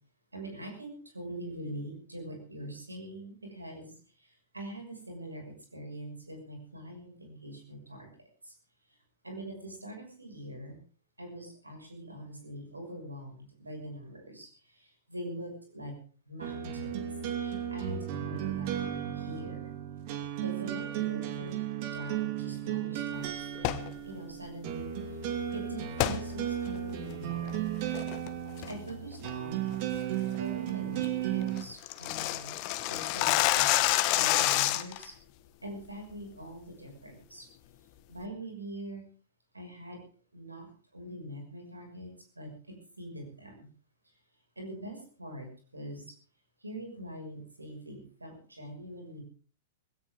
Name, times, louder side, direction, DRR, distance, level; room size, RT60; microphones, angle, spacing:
voice 1, 0.3-8.1 8.4-8.5 8.9-9.0 9.2-10.8 11.2-16.0 16.2-19.7 20.4-21.6 21.9-25.2 25.5-27.6 28.6-29.9 30.3-32.6 32.9-33.8 34.1-35.2 35.6-37.5 38.1-39.0 39.5-40.1 40.3-43.7 44.6-46.2 46.6-49.2, right 1 dB, 90° right, 4 dB, 6.3 m, -43 dB
sound 1, 16.4-31.6, right 10 dB, 45° right, 2.5 m, -34 dB
sound 2, 23.5-23.9 26.0-26.2 26.7-26.8 27.3-27.6 27.9-28.3 28.6-28.9 29.2-29.3 29.7-30.0 30.3-30.4 30.7-30.8 31.0-31.1 31.4-35.0, left 16 dB, 45° left, 1.2 m, -27 dB
19.5 x 17.0 x 3.8 m, 0.38 s
figure-of-eight pair, 100°, 0 cm